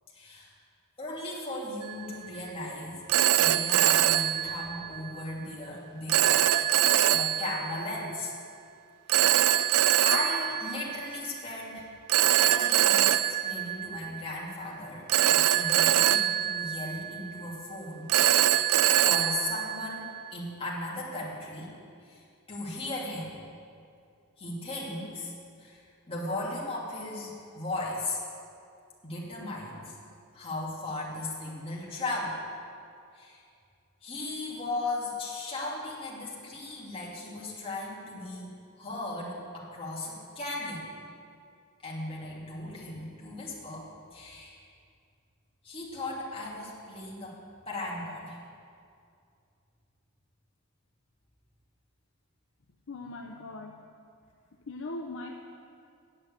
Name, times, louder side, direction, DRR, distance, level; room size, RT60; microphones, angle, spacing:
voice 1, 0.1-0.5 1.0-3.0 3.4-6.5 7.1-8.3 9.1-9.4 10.0-11.8 12.4-18.1 19.0-21.7 22.0-23.3 24.4-28.2 29.0-30.0 30.3-32.4 33.1-33.4 34.0-38.5 38.8-40.9 41.8-44.6 45.6-47.4 47.7-48.4, left 2 dB, 25° left, -5 dB, 2.5 m, -37 dB
Telephone, 1.8-2.2 3.1-5.1 6.1-7.8 9.1-11.3 12.1-14.4 15.1-17.4 18.1-20.3, right 12 dB, 80° right, 0.4 m, -24 dB
voice 2, 52.9-53.8 54.7-55.4, left 2 dB, 60° left, 1 dB, 0.7 m, -39 dB
8.9 x 7.6 x 8.7 m, 2.4 s
head